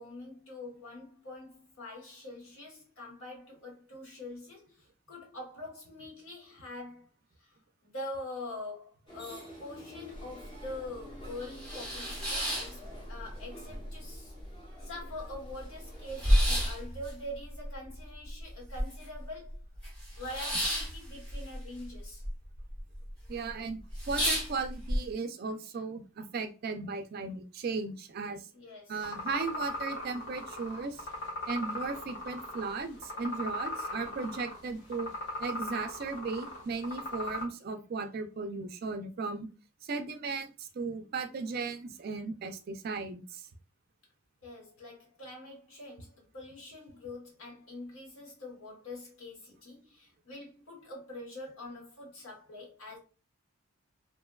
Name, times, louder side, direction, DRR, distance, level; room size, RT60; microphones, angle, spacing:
voice 1, 0.0-7.1 7.4-7.5 7.9-12.8 13.1-14.3 14.8-19.6 20.2-22.2 28.5-29.1 44.4-53.0, left 1 dB, 75° left, 1.1 m, -44 dB
sound 1, 9.1-16.9, equal, 25° left, 0.8 m, -50 dB
sound 2, 10.2-10.3 10.7-10.8 11.2-13.4 13.7-14.5 14.8-14.9 15.1-19.2 19.5-22.3 22.6-23.1 23.5-23.6 23.9-25.0, equal, 5° left, 1.1 m, -31 dB
voice 2, 23.3-23.8 24.1-28.5 28.9-31.1 31.5-35.1 35.4-39.5 39.8-43.5, right 4 dB, 45° right, 0.3 m, -36 dB
sound 3, 29.0-37.4, left 1 dB, 55° left, 0.9 m, -39 dB
2.6 x 2.2 x 2.2 m
head